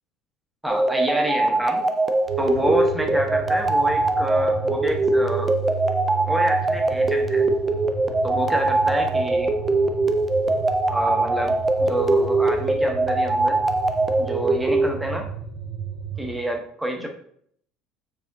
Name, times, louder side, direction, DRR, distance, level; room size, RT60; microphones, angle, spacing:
voice 1, 0.6-1.8 2.4-5.5 6.3-7.4 8.2-9.5 10.9-13.6 14.2-15.2 16.2-17.1, right 1 dB, 5° right, 2 dB, 1.1 m, -27 dB
sound 1, 0.7-14.9, right 2 dB, 25° right, 0.4 m, -22 dB
sound 2, 2.3-16.4, right 7 dB, 55° right, 1.1 m, -34 dB
4.8 x 3.5 x 2.5 m, 0.63 s
figure-of-eight pair, 60°, 0 cm